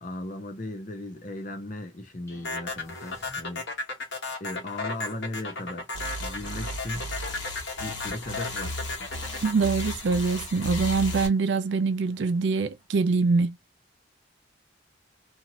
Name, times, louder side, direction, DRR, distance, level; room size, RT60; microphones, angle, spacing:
voice 1, 0.0-3.7 4.4-5.9 6.2-7.1 7.8-8.8, left 1 dB, 40° left, 0.8 m, -37 dB
sound 1, 2.3-4.0, left 1 dB, 15° left, 0.9 m, -52 dB
sound 2, 2.4-10.8, left 3 dB, 65° left, 1.1 m, -34 dB
sound 3, 5.9-11.3, left 1 dB, 90° left, 1.4 m, -35 dB
voice 2, 9.4-13.6, right 4 dB, 65° right, 0.4 m, -24 dB
2.8 x 2.6 x 2.8 m
head